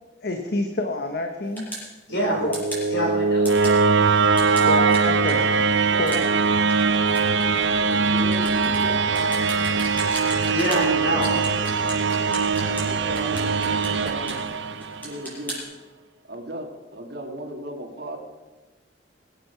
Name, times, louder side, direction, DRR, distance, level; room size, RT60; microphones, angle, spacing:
voice 1, 0.2-1.7 2.4-2.5 4.7-5.4 6.0-6.2, left 1 dB, 60° left, 5 dB, 1.1 m, -27 dB
sound 1, 1.6-1.9 2.5-2.9 3.5-3.8 4.4-10.9 11.2-12.9 13.2-14.5 14.8-15.6, right 1 dB, 10° left, 5.9 m, -35 dB
voice 2, 2.1-2.4 2.9-3.8 5.3-5.5 10.2-11.5, equal, 75° left, -1 dB, 5.0 m, -27 dB
sound 2, 2.1-15.2, right 4 dB, 80° right, 0.8 m, -22 dB
voice 3, 5.9-6.4 7.8-9.3 12.8-14.3 14.8-15.6 16.3-18.2, right 1 dB, 60° right, 3 dB, 2.1 m, -36 dB
22.0 x 8.7 x 5.8 m, 1.2 s
head